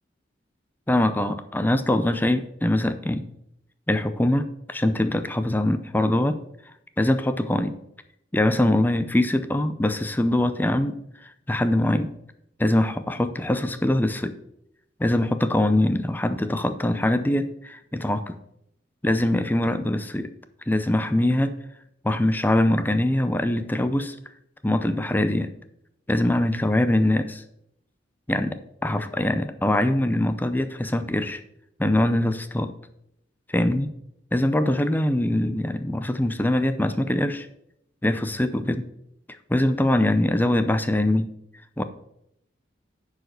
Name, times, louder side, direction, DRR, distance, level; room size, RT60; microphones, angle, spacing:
voice 1, 0.9-3.3 3.9-6.4 7.0-7.8 8.3-12.1 12.6-14.4 15.0-18.4 19.0-20.3 20.7-21.6 22.0-24.2 24.6-25.5 26.1-27.4 28.3-31.4 31.8-32.7 33.5-33.9 34.3-37.5 38.0-38.9 39.5-41.3 41.8-41.9, left 1 dB, 10° left, 10 dB, 0.5 m, -23 dB
10.0 x 4.9 x 6.7 m, 0.77 s
head